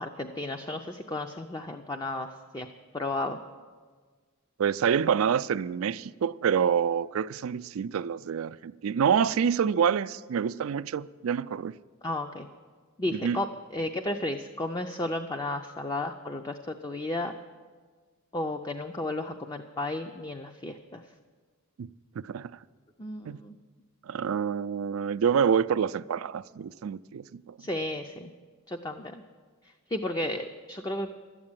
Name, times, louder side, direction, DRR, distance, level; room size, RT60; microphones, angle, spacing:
voice 1, 0.0-2.7 2.9-3.4 12.0-12.5 13.0-13.5 13.7-17.3 18.3-21.0 23.0-23.5 27.6-28.3 28.7-29.2 29.9-31.1, left 2 dB, 20° left, 0.5 m, -33 dB
voice 2, 4.6-11.7 13.1-13.4 21.8-21.9 22.2-22.5 23.3-23.4 24.1-27.6, right 7 dB, 75° right, 0.4 m, -27 dB
12.0 x 8.5 x 8.9 m
head